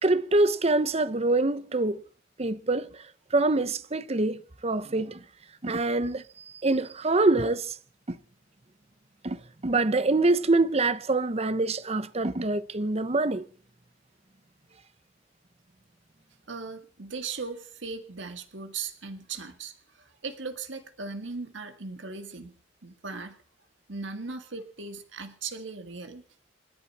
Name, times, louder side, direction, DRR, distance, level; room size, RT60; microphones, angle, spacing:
voice 1, 0.0-2.0 2.4-3.1 3.3-5.2 5.6-7.8 8.1-8.2 9.2-13.4, right 2 dB, 35° right, 0.8 m, -25 dB
voice 2, 16.5-22.5 22.8-23.4 23.9-26.2, right 4 dB, 70° right, 1.8 m, -38 dB
29.0 x 11.0 x 4.3 m
head